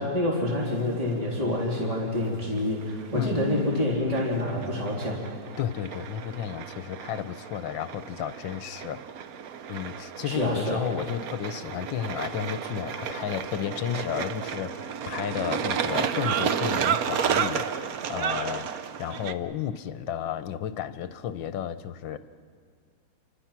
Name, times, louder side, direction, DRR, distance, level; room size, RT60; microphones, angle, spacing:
voice 1, 0.0-5.2 10.3-10.8, left 1 dB, 20° right, -3 dB, 3.8 m, -27 dB
sound 1, 0.6-19.3, right 8 dB, 60° right, 1.1 m, -32 dB
voice 2, 3.1-3.5 5.6-9.0 9.7-22.2, left 9 dB, 80° left, 12 dB, 1.6 m, -33 dB
29.0 x 25.0 x 6.0 m, 2.1 s
omnidirectional pair, 2.1 m